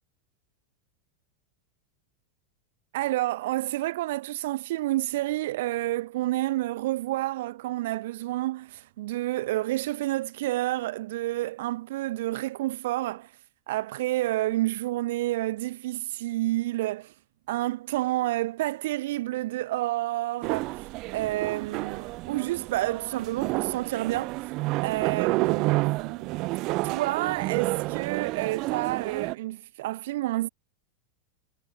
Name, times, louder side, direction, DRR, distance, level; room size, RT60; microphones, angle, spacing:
voice 1, 2.9-13.3 13.7-17.1 17.5-24.4 24.8-26.3 26.8-30.5, right 16 dB, 65° right, 1.9 m, -29 dB
sound 1, 20.4-29.3, right 22 dB, 40° right, 0.5 m, -30 dB
supercardioid pair, 160°, 0 cm